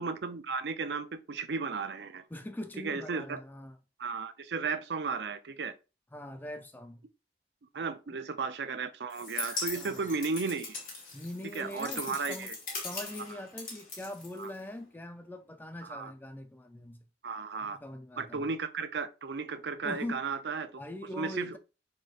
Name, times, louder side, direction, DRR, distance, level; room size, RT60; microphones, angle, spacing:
voice 1, 0.0-2.2 2.8-3.4 4.0-5.7 7.7-10.8 11.5-12.6 14.4-14.5 15.8-16.1 17.2-17.8 18.2-20.7 21.2-21.6, right 4 dB, 70° right, 0.5 m, -34 dB
voice 2, 2.3-3.8 6.1-7.0 8.1-8.2 9.7-10.1 11.1-12.5 12.8-17.0 17.6-18.5 19.8-20.2 20.8-21.6, left 1 dB, 10° left, 0.4 m, -42 dB
sound 1, 9.1-14.8, left 3 dB, 45° left, 1.7 m, -40 dB
4.8 x 4.4 x 2.4 m
head